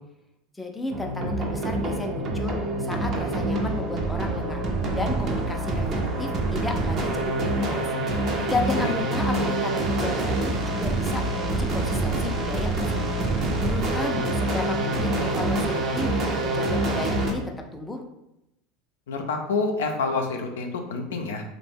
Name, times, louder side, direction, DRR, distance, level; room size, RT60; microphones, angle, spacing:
voice 1, 0.6-4.6 4.9-13.1 13.6-17.4 17.7-18.0, left 2 dB, 10° left, 2 dB, 0.4 m, -33 dB
sound 1, 0.9-17.3, right 2 dB, 45° right, 0.6 m, -26 dB
voice 2, 19.1-21.4, left 4 dB, 90° left, 3 dB, 0.4 m, -28 dB
2.6 x 2.1 x 3.3 m, 0.86 s
supercardioid pair, 105°, 0 cm